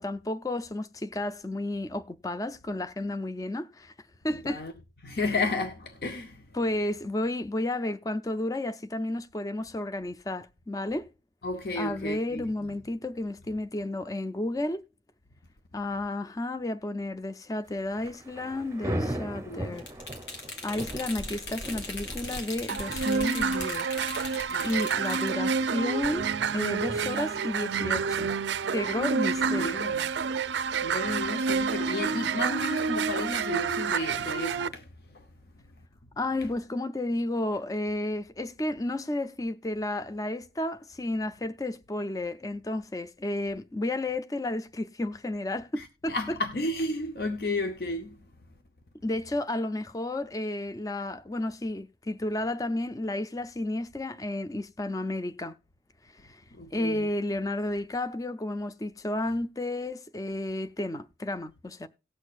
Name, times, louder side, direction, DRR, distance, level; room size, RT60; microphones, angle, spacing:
voice 1, 0.0-3.9 4.2-4.6 6.5-11.1 11.8-14.8 15.7-19.9 20.6-23.9 24.3-26.2 26.5-28.3 28.7-29.8 36.2-46.4 49.0-55.6 56.2-56.4 56.7-61.9, left 1 dB, 20° left, 0.4 m, -32 dB
voice 2, 4.3-4.7 5.0-6.5 11.4-12.8 19.5-19.7 24.5-25.0 29.5-30.1 30.8-35.2 45.8-48.2 56.5-57.1, left 2 dB, 60° left, 0.8 m, -33 dB
Thunder / Rain, 17.7-30.4, right 1 dB, 15° right, 0.7 m, -40 dB
sound 1, 19.8-25.3, left 2 dB, 85° left, 1.9 m, -39 dB
sound 2, 22.7-34.7, right 5 dB, 90° right, 0.5 m, -29 dB
18.5 x 6.4 x 2.4 m
head